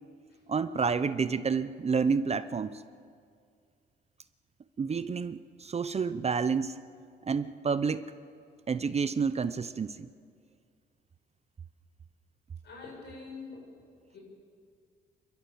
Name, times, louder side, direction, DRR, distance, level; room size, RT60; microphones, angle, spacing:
voice 1, 0.5-2.8 4.8-6.8 7.2-8.1 8.7-10.1, right 5 dB, 30° right, 13 dB, 0.6 m, -29 dB
voice 2, 12.6-13.6 14.1-14.2, left 4 dB, 60° left, 0 dB, 7.7 m, -44 dB
28.5 x 13.0 x 7.2 m, 2.2 s
cardioid pair, 90°, 20 cm